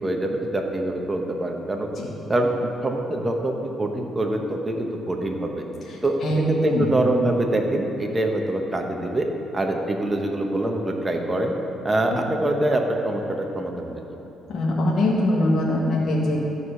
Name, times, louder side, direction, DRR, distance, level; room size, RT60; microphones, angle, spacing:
voice 1, 0.0-1.9 2.3-5.6 6.0-9.3 9.5-11.5 11.8-14.0, right 1 dB, 20° right, 2 dB, 1.1 m, -24 dB
voice 2, 5.9-6.9 14.5-16.4, left 1 dB, 55° left, -4 dB, 1.7 m, -23 dB
13.5 x 4.9 x 5.7 m, 2.9 s
cardioid pair, 90°, 0 cm